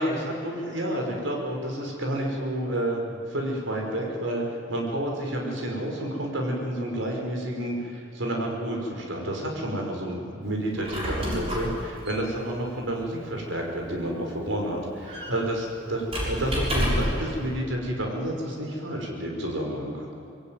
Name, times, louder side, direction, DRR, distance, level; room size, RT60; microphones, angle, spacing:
voice 1, 0.0-20.1, right 1 dB, 75° right, 0 dB, 5.6 m, -30 dB
Squeak, 10.6-17.3, equal, 30° right, 6.7 m, -31 dB
25.0 x 22.0 x 9.5 m, 2.5 s
head